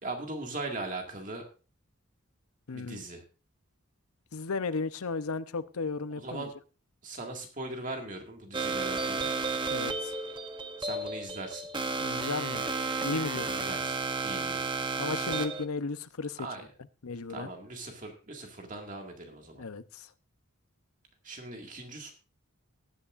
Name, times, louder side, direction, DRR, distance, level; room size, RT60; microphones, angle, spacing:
voice 1, 0.0-1.5 2.7-3.2 6.2-6.5 7.0-9.3 10.8-11.7 13.5-14.6 16.4-16.6 17.3-19.6 21.2-22.1, right 2 dB, 35° right, 2.0 m, -40 dB
voice 2, 2.7-3.0 4.3-6.5 9.7-10.1 12.0-12.6 13.0-13.5 15.0-16.5 17.0-17.5 19.6-20.1, left 4 dB, 85° left, 0.7 m, -34 dB
sound 1, 8.5-15.6, right 4 dB, 20° right, 0.8 m, -32 dB
19.0 x 9.9 x 2.5 m
head